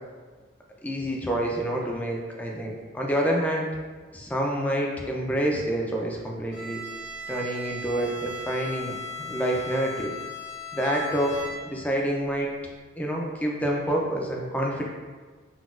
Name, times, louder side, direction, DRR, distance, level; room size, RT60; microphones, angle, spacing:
voice 1, 0.8-3.7 4.1-6.8 7.3-10.1 10.7-12.5 13.0-14.9, right 1 dB, 10° left, -1 dB, 0.3 m, -27 dB
Bowed string instrument, 6.5-11.9, left 2 dB, 70° left, 1.1 m, -37 dB
3.9 x 2.2 x 2.3 m, 1.4 s
head